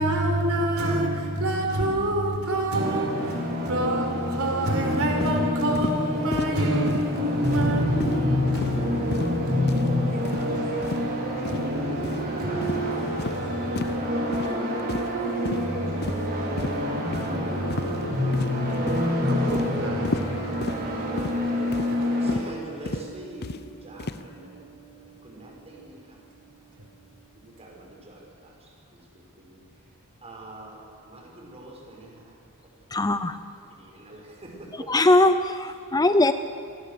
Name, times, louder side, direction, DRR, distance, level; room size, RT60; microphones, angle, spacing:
voice 1, 0.0-14.0 18.7-18.8 19.2-20.2 21.9-22.0, right 1 dB, 70° right, 4.7 m, -28 dB
sound 1, 2.7-22.3, left 1 dB, 45° right, 5.1 m, -27 dB
sound 2, 5.2-5.4 5.7-6.0 6.3-6.5 6.9-7.1 7.4-7.7 8.0-8.2 8.5-8.8 9.1-9.4 9.7-9.9 10.2-10.5 10.8-11.0 11.4-11.6 12.0-12.2 12.6-12.8 13.2-13.4 13.7-14.0 14.3-14.5 14.9-15.2 15.4-15.6 16.0-16.3 16.6-16.8 17.1-17.3 17.7-18.0 18.3-18.6 18.9-19.1 19.5-19.7 20.0-20.3 20.6-20.8 21.2-21.4 21.7-21.9 22.3-22.5 22.8-23.1 23.4-23.6 24.0-24.2, left 3 dB, 50° left, 0.8 m, -32 dB
Guitar, 20.1-27.9, right 5 dB, 90° left, 4.6 m, -44 dB
voice 2, 20.5-21.2 22.1-23.5 23.8-24.6 25.2-25.9 27.6-28.2 29.4-29.5 30.2-30.8 31.1-32.1 32.9-33.0 33.8-34.9, right 2 dB, 30° right, 6.1 m, -43 dB
voice 3, 32.9-33.4 34.7-36.3, left 2 dB, 15° left, 0.6 m, -20 dB
29.0 x 23.0 x 6.8 m
head